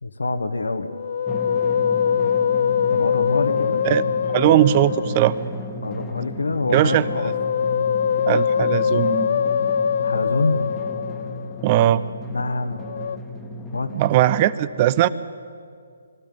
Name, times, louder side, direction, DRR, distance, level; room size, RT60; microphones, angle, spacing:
voice 1, 0.0-0.9 2.9-3.8 5.8-7.3 10.0-10.7 12.3-12.8 13.7-13.9, left 3 dB, 80° left, 9 dB, 1.4 m, -25 dB
Musical instrument, 0.9-5.5 6.8-11.6 12.8-13.2, left 7 dB, 50° left, 0.4 m, -23 dB
Drum, 1.3-14.2, left 1 dB, 10° left, 1.5 m, -34 dB
voice 2, 4.3-5.3 6.7-7.0 8.3-9.3 11.6-12.0 13.9-15.1, right 13 dB, 30° right, 17 dB, 0.7 m, -19 dB
24.0 x 13.0 x 9.5 m, 2.3 s
figure-of-eight pair, 145°, 0 cm